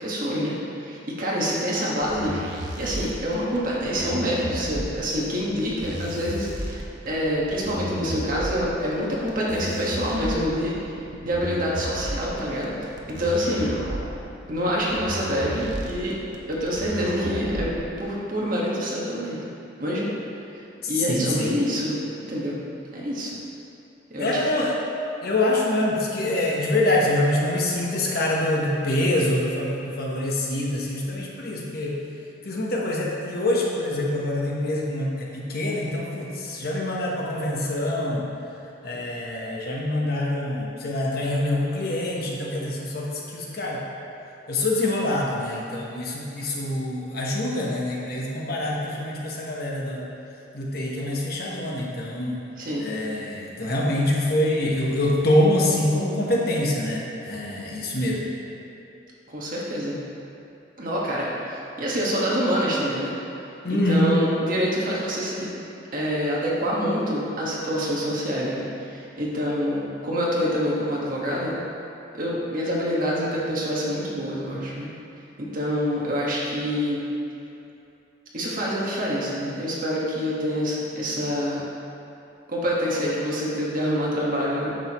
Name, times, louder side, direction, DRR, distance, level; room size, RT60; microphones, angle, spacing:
voice 1, 0.0-10.7 11.2-12.7 13.1-13.8 14.5-16.2 16.5-17.7 18.0-19.4 19.8-20.1 20.9-22.0 22.3-22.6 22.9-23.4 24.1-24.4 52.6-52.9 59.3-60.0 60.8-63.1 63.8-65.5 65.9-71.6 72.1-74.9 75.4-77.0 78.3-81.6 82.5-84.7, equal, 45° right, -5 dB, 1.5 m, -26 dB
sound 1, 2.0-18.0, right 1 dB, 70° right, 0.9 m, -33 dB
voice 2, 20.8-21.6 24.2-24.8 25.2-32.0 32.4-38.3 38.8-43.8 44.5-50.0 50.5-52.4 52.8-58.3 63.6-64.1, left 1 dB, 55° left, -3 dB, 1.1 m, -25 dB
9.1 x 6.4 x 3.0 m, 2.8 s
head